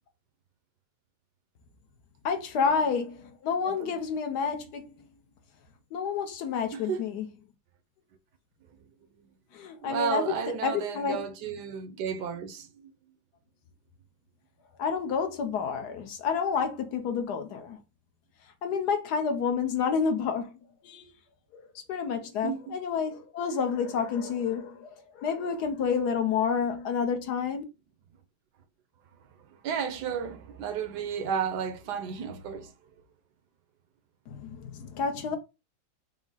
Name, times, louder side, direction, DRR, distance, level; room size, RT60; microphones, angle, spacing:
voice 1, 2.2-4.9 5.9-7.2 9.5-10.3 10.6-11.2 14.8-17.8 18.6-20.5 20.8-21.1 21.5-27.6 34.3-35.4, left 6 dB, 70° left, 1.2 m, -29 dB
voice 2, 3.6-4.0 6.7-7.1 9.8-12.9 22.4-22.8 29.5-32.7, right 7 dB, 75° right, 1.1 m, -33 dB
4.8 x 2.0 x 3.8 m
omnidirectional pair, 2.0 m